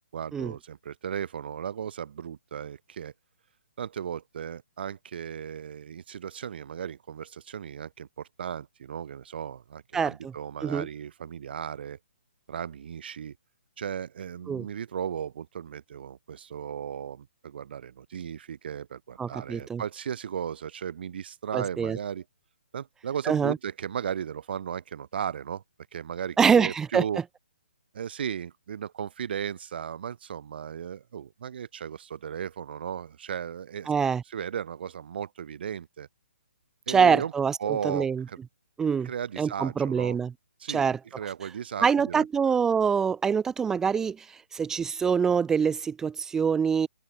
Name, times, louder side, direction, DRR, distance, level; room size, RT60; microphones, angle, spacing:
voice 1, 0.1-3.1 3.8-12.0 12.5-13.4 13.8-22.2 22.7-25.6 25.9-27.2 27.9-33.9 34.3-36.1 36.9-37.3 37.6-38.4 39.0-40.2 40.6-42.2, right 8 dB, 55° right, 4.2 m, -36 dB
voice 2, 9.9-10.3 10.6-10.9 14.5-14.7 19.2-19.8 21.5-22.0 23.3-23.6 26.4-27.0 33.9-34.2 36.9-37.6 37.8-38.2 38.8-39.1 39.4-40.3 40.7-41.0 41.8-46.9, right 6 dB, 10° right, 0.6 m, -25 dB
open air
hypercardioid pair, 155°, 7 cm